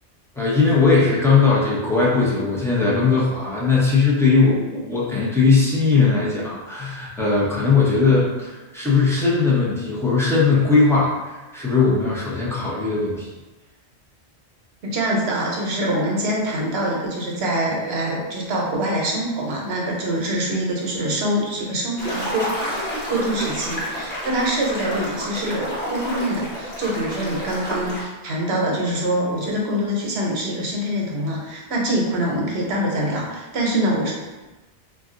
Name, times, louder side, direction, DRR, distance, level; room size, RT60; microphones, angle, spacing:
voice 1, 0.4-13.3, left 4 dB, 5° left, -7 dB, 0.5 m, -19 dB
voice 2, 14.8-22.5 23.1-34.1, right 1 dB, 70° right, -2 dB, 1.0 m, -24 dB
sound 1, 22.0-28.1, equal, 65° left, 1.1 m, -29 dB
2.4 x 2.3 x 3.7 m, 1.1 s
omnidirectional pair, 1.1 m